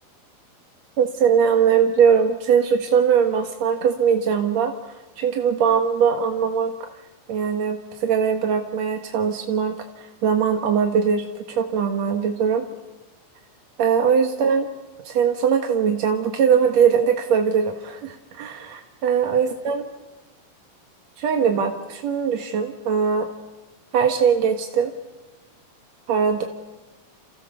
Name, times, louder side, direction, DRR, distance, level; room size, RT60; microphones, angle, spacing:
voice 1, 1.0-6.7 7.3-9.8 10.2-12.7 13.8-14.7 15.0-19.8 21.2-23.3 23.9-24.9 26.1-26.4, right 7 dB, 65° right, 4 dB, 1.7 m, -21 dB
29.0 x 28.5 x 7.0 m, 1.1 s
omnidirectional pair, 5.5 m